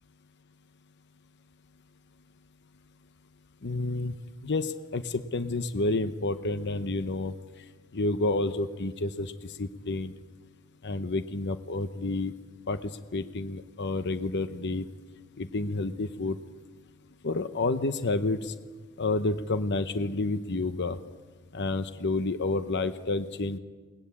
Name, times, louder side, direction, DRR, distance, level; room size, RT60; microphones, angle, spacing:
voice 1, 3.6-4.1 4.4-7.3 7.9-10.1 10.8-12.3 12.7-14.9 15.4-16.4 17.2-18.5 19.0-21.0 21.5-23.6, left 2 dB, 55° left, 11 dB, 0.8 m, -29 dB
21.5 x 19.0 x 8.4 m, 1.4 s
head